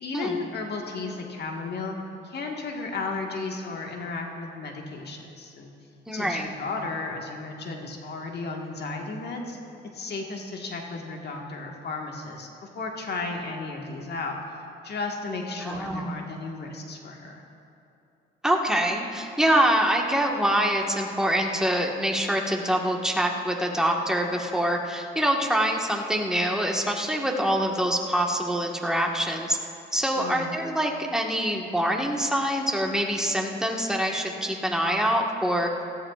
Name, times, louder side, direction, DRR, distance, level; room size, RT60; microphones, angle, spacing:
voice 1, 0.0-1.9 2.2-5.7 6.1-9.6 9.9-12.5 12.7-14.4 14.8-17.4 30.1-30.5, left 3 dB, 55° left, 1 dB, 1.7 m, -34 dB
voice 2, 6.1-6.5 15.6-16.2 18.4-29.6 29.9-35.7, equal, 5° right, 0 dB, 1.5 m, -25 dB
18.5 x 14.0 x 2.5 m, 2.7 s
cardioid pair, 90°, 20 cm